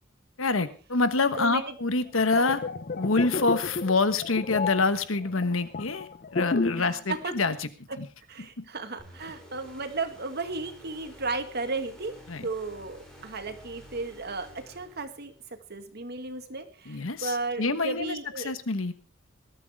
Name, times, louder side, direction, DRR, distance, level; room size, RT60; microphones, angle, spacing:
voice 1, 0.4-2.6 3.0-7.6 8.0-8.1 12.3-12.5 16.9-18.2 18.4-18.9, left 3 dB, 85° left, 11 dB, 1.3 m, -26 dB
voice 2, 1.4-1.8 6.8-7.3 8.3-12.1 12.4-18.6, right 3 dB, 55° right, 7 dB, 1.9 m, -34 dB
sound 1, 2.1-7.0 7.2-7.5, left 3 dB, 50° left, 0.7 m, -31 dB
sound 2, 9.0-15.5, equal, 5° left, 6.3 m, -51 dB
19.5 x 13.0 x 3.6 m, 0.35 s
head